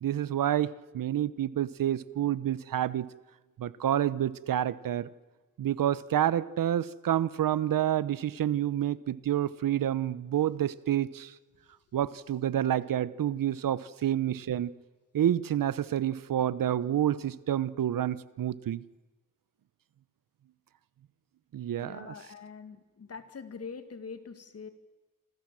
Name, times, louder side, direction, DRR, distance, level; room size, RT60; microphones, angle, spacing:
voice 1, 0.0-3.1 3.6-5.1 5.6-11.3 11.9-14.7 15.1-18.8 21.5-22.1, right 11 dB, 70° right, 18 dB, 0.9 m, -28 dB
voice 2, 21.8-24.7, left 5 dB, 45° left, 10 dB, 2.1 m, -44 dB
28.5 x 25.5 x 7.6 m, 1.2 s
wide cardioid pair, 175°, 34 cm